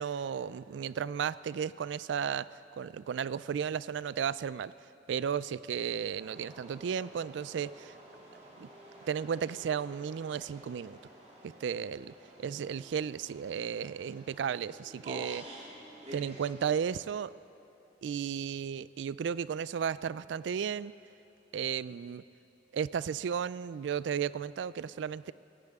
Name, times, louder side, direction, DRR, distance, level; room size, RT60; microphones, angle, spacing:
voice 1, 0.0-4.7 5.1-7.9 8.6-8.7 9.1-11.0 11.4-12.1 12.4-15.5 16.1-17.3 18.0-20.9 21.5-22.2 22.7-25.3, right 7 dB, 85° right, 18 dB, 0.3 m, -34 dB
sound 1, 6.2-17.0, right 1 dB, 40° right, 2.7 m, -50 dB
20.5 x 17.5 x 3.6 m, 2.9 s
head